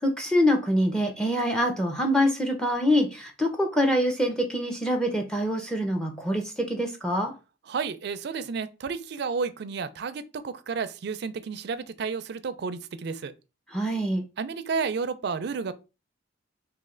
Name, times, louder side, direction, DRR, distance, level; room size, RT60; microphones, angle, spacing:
voice 1, 0.0-7.3 13.7-14.2, equal, 5° left, 0.5 m, -25 dB
voice 2, 7.7-13.3 14.4-15.7, right 5 dB, 60° right, 0.4 m, -31 dB
3.1 x 2.9 x 3.7 m
head